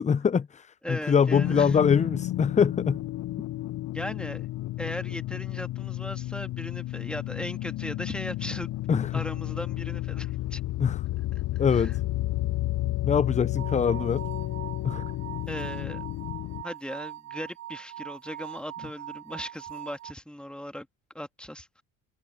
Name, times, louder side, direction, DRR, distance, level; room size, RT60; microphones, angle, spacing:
voice 1, 0.0-3.0 8.9-9.1 10.8-11.0 11.6-12.0 13.0-14.3 14.8-15.0, left 6 dB, 20° left, 0.5 m, -24 dB
voice 2, 0.8-1.8 3.9-4.5 4.8-8.8 9.1-10.6 11.7-12.0 15.5-16.0 16.6-20.9 21.1-21.8, equal, ahead, 2.7 m, -38 dB
sound 1, 1.3-16.6, left 16 dB, 45° left, 0.8 m, -32 dB
sound 2, 13.6-20.1, right 13 dB, 40° right, 1.6 m, -41 dB
hypercardioid pair, 65°, 41 cm